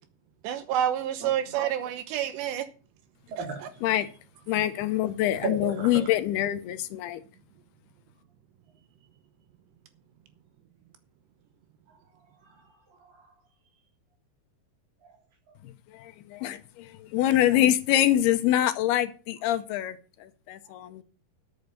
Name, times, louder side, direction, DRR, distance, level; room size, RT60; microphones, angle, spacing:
voice 1, 0.4-2.6 3.4-3.5, right 10 dB, 80° right, 3.1 m, -28 dB
voice 2, 3.3-3.8 5.4-6.0 11.9-12.0 12.4-13.3 15.0-15.1 20.6-20.7, right 4 dB, 55° right, 4.4 m, -36 dB
voice 3, 4.5-7.2 15.9-21.0, left 12 dB, 75° left, 2.6 m, -25 dB
11.0 x 8.7 x 6.6 m
omnidirectional pair, 5.1 m